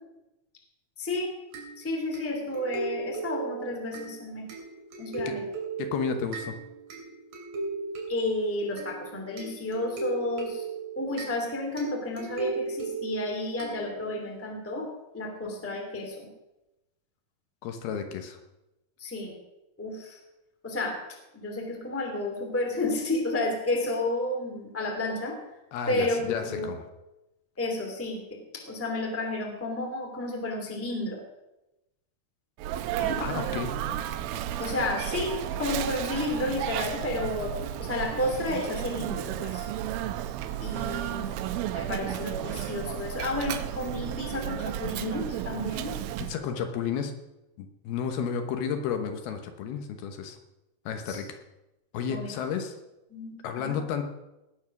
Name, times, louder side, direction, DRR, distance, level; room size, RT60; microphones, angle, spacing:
voice 1, 1.0-1.3 1.8-4.4 5.0-5.4 8.1-10.7 11.0-16.3 19.0-19.3 19.8-20.2 20.6-21.0 21.3-25.4 25.9-26.7 27.6-28.4 28.7-31.2 33.0-33.2 34.6-37.5 37.8-39.7 40.6-41.3 41.7-46.0 51.1-51.2 52.1-52.3 53.1-53.8, left 2 dB, 5° left, 1 dB, 1.7 m, -31 dB
sound 1, 1.5-14.3, right 4 dB, 60° right, 4.4 m, -37 dB
voice 2, 5.8-6.5 17.6-18.4 25.7-26.8 33.2-33.8 46.3-47.1 47.6-50.4 50.9-51.4 51.9-52.7 53.4-54.1, left 7 dB, 75° left, 6 dB, 3.0 m, -32 dB
Sneeze, 32.6-46.4, right 11 dB, 80° right, 2.4 m, -33 dB
18.5 x 7.4 x 6.0 m, 0.95 s
omnidirectional pair, 4.5 m